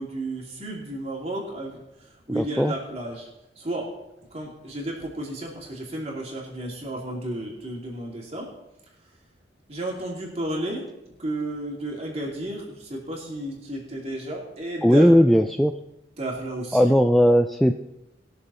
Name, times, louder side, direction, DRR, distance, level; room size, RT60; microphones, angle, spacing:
voice 1, 0.0-1.8 2.3-3.3 3.6-3.9 4.3-8.5 9.7-10.8 11.2-15.0 16.2-16.9, right 1 dB, 35° right, -2 dB, 2.9 m, -32 dB
voice 2, 2.3-2.7 14.8-15.7 16.7-17.7, equal, ahead, 6 dB, 0.3 m, -18 dB
20.5 x 6.9 x 4.3 m, 0.90 s
head